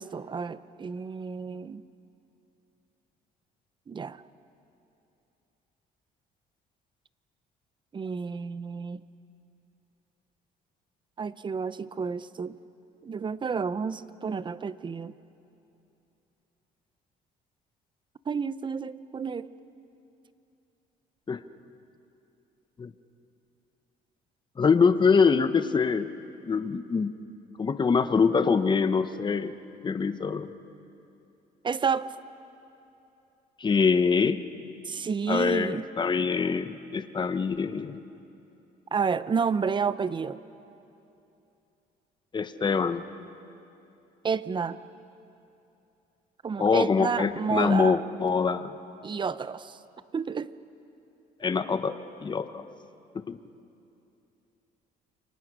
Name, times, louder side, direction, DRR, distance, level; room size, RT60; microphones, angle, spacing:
voice 1, 0.0-1.8 3.9-4.2 7.9-9.0 11.2-12.5 13.0-15.1 18.3-19.5 31.6-32.1 34.8-35.9 38.9-40.4 44.2-44.8 46.4-48.0 49.0-49.8 50.1-50.5, right 5 dB, 30° right, 15 dB, 0.7 m, -30 dB
voice 2, 24.6-26.1 26.5-27.1 27.6-29.5 29.8-30.5 33.6-34.4 35.3-38.0 42.3-43.0 46.6-48.8 51.4-52.6 53.1-53.4, left 5 dB, 25° left, 11 dB, 1.0 m, -24 dB
28.5 x 24.0 x 6.3 m, 2.8 s
cardioid pair, 110°, 17 cm